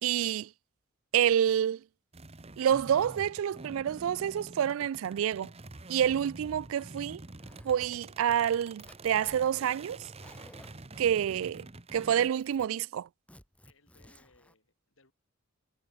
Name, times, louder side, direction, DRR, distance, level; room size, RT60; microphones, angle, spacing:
voice 1, 0.0-0.5 1.1-1.8 2.6-5.5 5.9-7.2 7.6-10.0 11.0-11.7 11.9-13.1, right 9 dB, 80° right, 0.3 m, -28 dB
sound 1, 2.1-12.3, right 2 dB, 30° right, 1.2 m, -47 dB
Zipper (clothing), 7.4-7.9 8.3-9.4 10.0-10.9 11.5-11.9 12.2-12.7 13.3-14.5, left 1 dB, 5° left, 4.1 m, -57 dB
voice 2, 13.7-15.1, left 3 dB, 70° left, 5.1 m, -65 dB
head